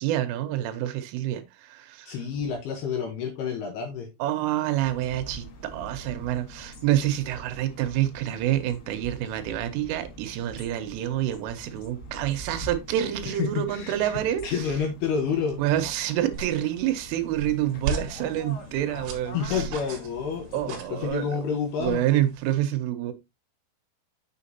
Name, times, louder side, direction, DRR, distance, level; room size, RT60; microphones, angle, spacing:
voice 1, 0.0-2.4 4.2-14.7 15.6-19.7 20.5-21.4 21.8-23.1, right 12 dB, 85° right, 3.4 m, -27 dB
voice 2, 2.1-4.1 13.3-14.1 14.4-15.6 19.3-22.0, left 6 dB, 75° left, 2.5 m, -29 dB
sound 1, 4.8-20.8, equal, 55° left, 3.1 m, -44 dB
sound 2, 16.3-22.5, right 4 dB, 55° right, 2.7 m, -37 dB
7.4 x 6.6 x 2.8 m
omnidirectional pair, 5.8 m